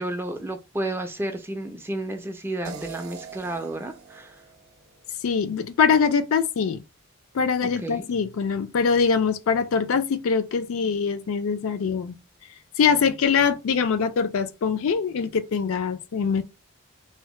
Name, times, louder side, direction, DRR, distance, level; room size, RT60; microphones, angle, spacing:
voice 1, 0.0-4.4 7.8-8.1, right 1 dB, 10° right, 0.3 m, -32 dB
sound 1, 2.6-5.7, right 6 dB, 75° right, 0.5 m, -43 dB
voice 2, 5.2-6.8 7.3-12.2 12.8-16.4, left 6 dB, 70° left, 0.4 m, -23 dB
2.7 x 2.1 x 3.1 m
head